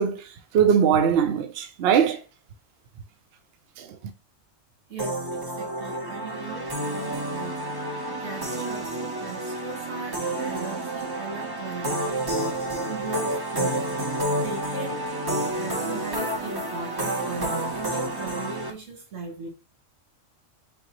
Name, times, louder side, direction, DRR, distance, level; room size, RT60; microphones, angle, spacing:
voice 1, 0.0-2.2 3.8-4.0, right 7 dB, 65° right, 0.7 m, -21 dB
voice 2, 4.9-12.3 12.9-13.8 14.2-19.5, right 4 dB, 80° right, 1.8 m, -39 dB
sound 1, 5.0-18.7, right 1 dB, 25° right, 0.6 m, -29 dB
4.0 x 3.9 x 2.8 m
omnidirectional pair, 1.3 m